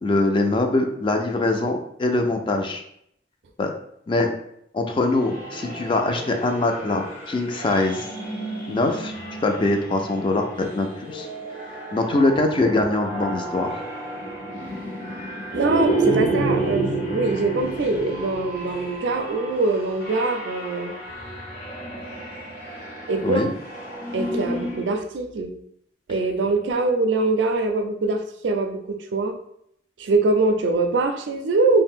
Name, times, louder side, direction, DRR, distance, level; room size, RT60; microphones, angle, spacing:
voice 1, 0.0-2.8 3.6-3.7 4.1-4.4 4.7-8.1 8.7-9.1 9.4-11.3 11.9-13.8 23.2-23.5, left 2 dB, 30° left, 4 dB, 0.3 m, -23 dB
sound 1, 5.1-24.9, right 2 dB, 55° left, 0.8 m, -30 dB
voice 2, 15.5-20.9 23.1-23.5 24.1-25.5 26.1-29.3 30.0-31.8, right 3 dB, 85° right, 6 dB, 0.4 m, -23 dB
2.5 x 2.1 x 3.5 m, 0.72 s
head